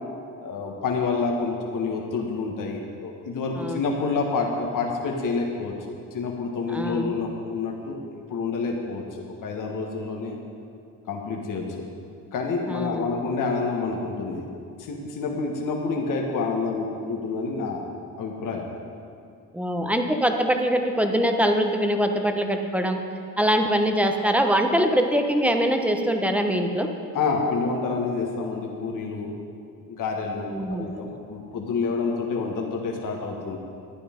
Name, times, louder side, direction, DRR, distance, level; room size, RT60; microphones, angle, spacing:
voice 1, 0.4-5.7 6.1-8.0 8.3-10.4 11.1-11.6 12.3-14.5 14.8-17.9 18.2-18.7 27.1-29.3 29.8-33.6, left 4 dB, 65° left, 0 dB, 1.7 m, -28 dB
voice 2, 6.7-7.2 12.7-13.1 19.5-23.0 23.4-26.9 30.5-30.9, equal, 5° right, 5 dB, 1.0 m, -23 dB
12.5 x 9.6 x 5.3 m, 2.6 s
cardioid pair, 90°, 34 cm